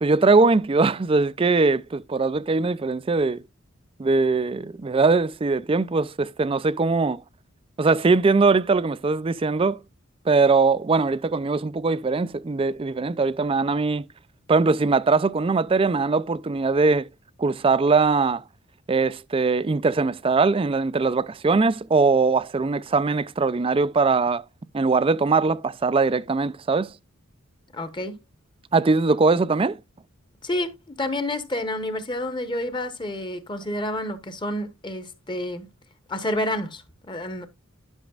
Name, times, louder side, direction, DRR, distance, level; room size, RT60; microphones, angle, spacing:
voice 1, 0.0-3.4 4.0-7.2 7.8-9.8 10.3-14.0 14.5-17.1 17.4-18.4 18.9-24.4 24.7-26.9 28.7-29.8, right 4 dB, 25° right, 0.4 m, -21 dB
voice 2, 27.7-28.2 30.4-35.7 36.1-37.5, left 1 dB, 20° left, 1.0 m, -29 dB
11.5 x 6.3 x 2.4 m
head